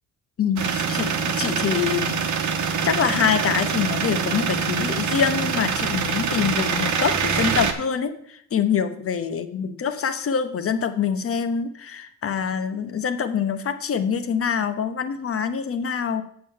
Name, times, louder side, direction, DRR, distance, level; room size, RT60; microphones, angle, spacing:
voice 1, 0.4-2.4 2.8-16.2, left 7 dB, 50° left, 10 dB, 0.9 m, -25 dB
sound 1, 0.6-7.7, right 6 dB, 75° right, 1.2 m, -24 dB
7.4 x 6.7 x 5.6 m, 0.67 s
cardioid pair, 90°, 30 cm